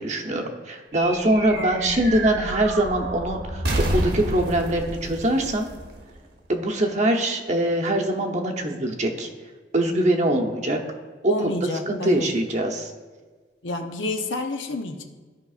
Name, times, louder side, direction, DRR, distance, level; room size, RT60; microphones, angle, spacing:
voice 1, 0.0-5.7 6.5-9.3 9.7-10.8 11.2-11.5 11.9-12.9, right 1 dB, 35° right, 2 dB, 0.8 m, -23 dB
sound 1, 0.9-6.6, right 1 dB, 55° right, 1.0 m, -30 dB
voice 2, 1.5-2.0 11.3-12.3 13.6-15.0, left 2 dB, 70° left, 5 dB, 0.7 m, -29 dB
14.5 x 5.2 x 2.4 m, 1.4 s
head